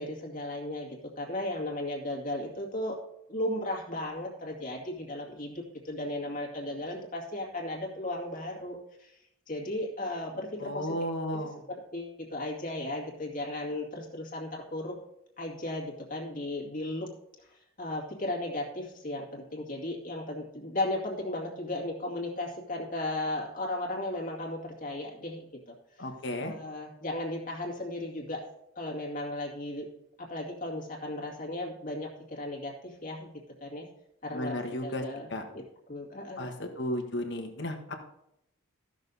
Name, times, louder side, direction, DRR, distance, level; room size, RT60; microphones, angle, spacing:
voice 1, 0.0-3.0 3.3-9.2 9.5-10.9 11.9-15.0 15.4-17.1 17.4-26.1 26.4-28.4 28.8-29.9 30.2-33.3 33.6-33.9 34.2-35.6 35.9-36.5, left 1 dB, 40° left, -3 dB, 2.2 m, -35 dB
voice 2, 10.6-11.6 26.0-26.5 34.3-35.0 35.3-35.4 36.4-37.9, left 1 dB, 55° left, 4 dB, 1.4 m, -34 dB
14.5 x 6.5 x 4.1 m, 0.79 s
head